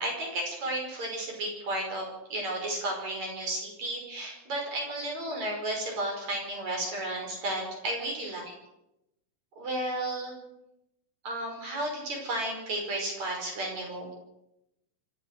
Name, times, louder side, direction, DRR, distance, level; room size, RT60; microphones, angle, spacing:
voice 1, 0.0-8.5 9.6-10.4 11.2-14.1, right 1 dB, 60° right, 0 dB, 6.8 m, -33 dB
26.0 x 15.0 x 6.8 m, 0.88 s
omnidirectional pair, 3.7 m